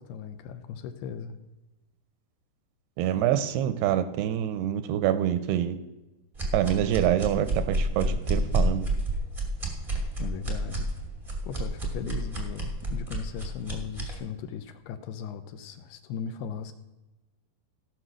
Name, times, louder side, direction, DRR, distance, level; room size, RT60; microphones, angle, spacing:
voice 1, 0.0-1.4 10.2-10.9 11.5-16.7, left 7 dB, 80° left, 9 dB, 2.5 m, -37 dB
voice 2, 3.0-5.8 6.5-8.9, right 11 dB, 80° right, 11 dB, 2.4 m, -26 dB
sound 1, 6.3-14.2, right 2 dB, 40° right, 0.4 m, -30 dB
15.5 x 6.1 x 6.3 m, 1.1 s
omnidirectional pair, 5.0 m